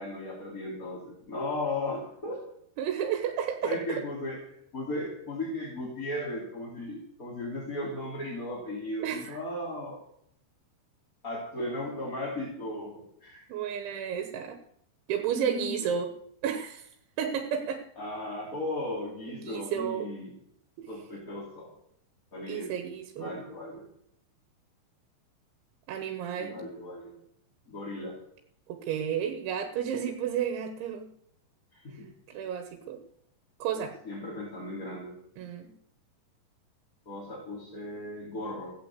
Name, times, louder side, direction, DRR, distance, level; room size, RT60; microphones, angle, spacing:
voice 1, 0.0-2.4 3.6-10.0 11.2-13.5 15.3-15.7 18.0-20.3 20.9-21.7 22.3-22.7 23.2-23.9 26.4-27.2 27.7-28.2 31.7-32.1 33.8-35.1 37.1-38.7, left 1 dB, 20° left, -6 dB, 3.8 m, -36 dB
voice 2, 2.8-3.8 9.0-9.4 13.5-14.6 15.1-16.1 16.4-16.9 17.2-17.8 19.3-20.1 20.8-20.9 22.5-23.3 25.9-26.6 28.7-31.1 31.9-32.0 32.3-33.0 33.6-34.0 35.4-35.7, right 8 dB, 90° right, 5 dB, 3.8 m, -32 dB
16.5 x 8.9 x 8.2 m, 0.71 s
omnidirectional pair, 5.2 m